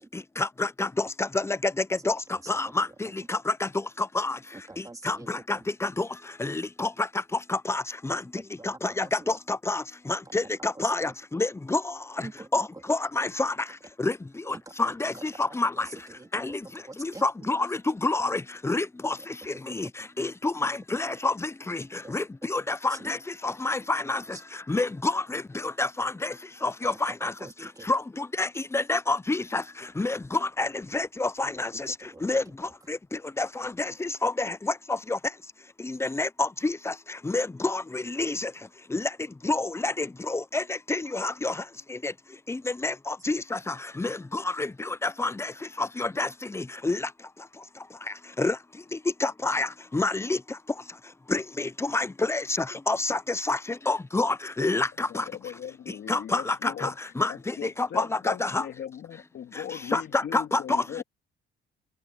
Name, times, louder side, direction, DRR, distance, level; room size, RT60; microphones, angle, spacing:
voice 1, 0.4-2.2 2.5-3.7 4.0-4.4 5.0-6.1 6.4-6.9 7.5-8.2 8.6-9.8 10.1-11.9 12.5-13.5 14.0-14.1 14.5-15.9 16.3-16.6 17.0-19.2 19.7-19.9 20.2-21.8 22.1-23.2 23.4-24.2 24.7-26.3 26.6-27.3 27.9-29.6 30.0-31.9 32.2-32.4 32.9-33.0 33.4-34.7 35.1-35.2 35.8-36.9 37.2-38.5 38.9-39.1 39.4-41.5 42.0-42.1 42.5-45.5 45.8-47.0 48.4-48.6 49.2-50.4 51.3-52.4 52.9-53.6 53.9-55.2 56.1-57.3 57.6-58.6 59.9-61.0, left 3 dB, 10° left, 0.8 m, -28 dB
voice 2, 4.5-5.3 8.6-8.9 9.2-9.4 12.2-12.7 15.8-15.9 16.2-16.6 16.9-17.2 20.0-20.1 22.0-22.1 23.0-23.1 24.3-24.4 26.8-27.9 32.1-32.3, right 2 dB, 15° right, 3.2 m, -44 dB
voice 3, 55.1-61.0, left 9 dB, 60° left, 3.1 m, -39 dB
cardioid pair, 95°, 21 cm